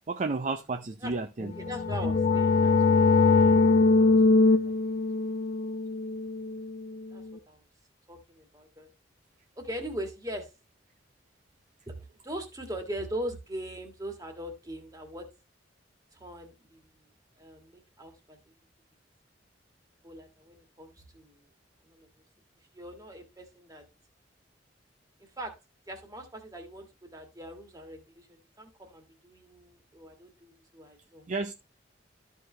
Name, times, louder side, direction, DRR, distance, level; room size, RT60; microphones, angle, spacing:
voice 1, 0.1-1.5 31.3-31.5, right 3 dB, 40° right, 0.5 m, -31 dB
voice 2, 1.4-2.7 3.3-5.0 7.1-7.6 8.1-8.9 9.6-10.5 11.9-12.0 12.2-15.2 16.1-16.9 17.4-18.4 20.0-21.4 21.9-22.1 22.7-23.8 25.4-25.5 25.9-31.2, equal, 20° right, 1.7 m, -41 dB
sound 1, 1.5-7.1, left 3 dB, 45° left, 0.4 m, -22 dB
13.0 x 4.8 x 3.2 m
head